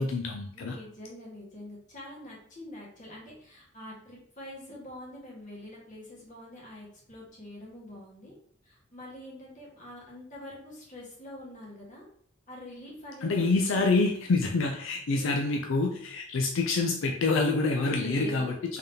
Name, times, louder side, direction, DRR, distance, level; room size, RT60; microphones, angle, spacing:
voice 1, 0.0-0.8 13.2-18.8, left 3 dB, 75° left, 3 dB, 0.4 m, -27 dB
voice 2, 0.5-8.3 8.6-12.1 12.5-14.0 15.1-15.4 17.9-18.6, equal, 40° left, -4 dB, 1.4 m, -45 dB
3.8 x 3.5 x 2.7 m, 0.64 s
head